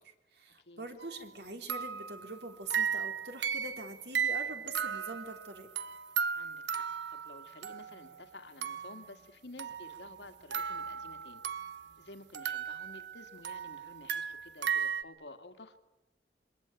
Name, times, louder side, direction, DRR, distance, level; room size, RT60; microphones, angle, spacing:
voice 1, 0.0-5.9, right 2 dB, 65° right, 6 dB, 3.3 m, -44 dB
sound 1, 1.0-1.2 1.7-8.2 8.6-9.1 9.6-11.9 12.3-15.0, right 7 dB, 85° right, 1.0 m, -36 dB
voice 2, 6.3-11.4 12.0-15.8, left 2 dB, 75° left, 7 dB, 2.0 m, -52 dB
27.5 x 23.5 x 9.0 m, 0.99 s
head